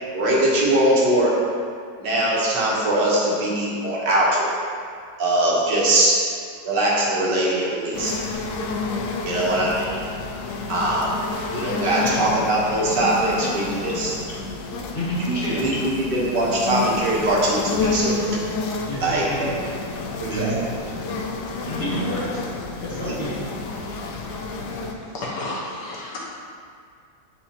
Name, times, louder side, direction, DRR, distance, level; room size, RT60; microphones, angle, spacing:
voice 1, 0.1-1.3 2.0-4.6 5.2-6.2 6.6-8.2 9.2-10.0 10.7-11.1 11.5-14.1 15.2-18.3 19.0-19.5 20.2-20.5 23.0-23.1, right 1 dB, 80° right, -5 dB, 1.8 m, -21 dB
sound 1, 7.9-24.9, left 3 dB, 75° left, 1.1 m, -30 dB
voice 2, 12.0-12.4 14.9-15.6 18.9-19.5 20.3-20.6 21.7-22.4 22.8-23.4, equal, 35° left, -9 dB, 1.9 m, -29 dB
voice 3, 25.0-26.2, left 2 dB, 90° left, -5 dB, 1.8 m, -31 dB
8.9 x 4.2 x 2.8 m, 2.2 s
omnidirectional pair, 1.8 m